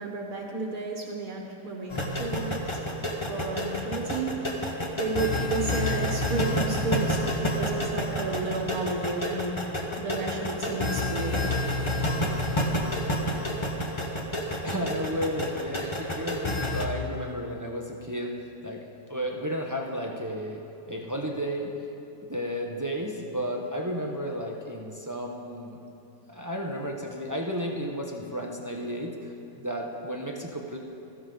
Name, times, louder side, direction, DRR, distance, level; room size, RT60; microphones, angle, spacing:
voice 1, 0.0-4.7 4.9-11.6, right 3 dB, 55° right, 0 dB, 1.6 m, -32 dB
sound 1, 1.9-16.9, left 1 dB, 20° left, 0.9 m, -29 dB
voice 2, 14.6-18.8 19.1-21.7 22.2-25.8 26.3-30.8, equal, 20° right, 0 dB, 0.5 m, -33 dB
16.0 x 14.5 x 3.9 m, 2.8 s
omnidirectional pair, 1.9 m